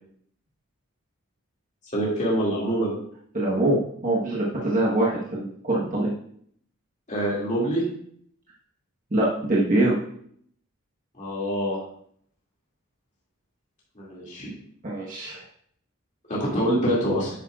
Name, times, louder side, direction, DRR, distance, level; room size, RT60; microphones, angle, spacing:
voice 1, 1.9-2.9 7.1-7.9 11.2-11.8 14.0-14.5 16.3-17.3, right 1 dB, 35° left, -5 dB, 2.2 m, -25 dB
voice 2, 3.3-6.1 9.1-10.0 14.8-15.4, right 1 dB, 35° right, -5 dB, 1.2 m, -24 dB
9.1 x 8.1 x 2.4 m, 0.64 s
head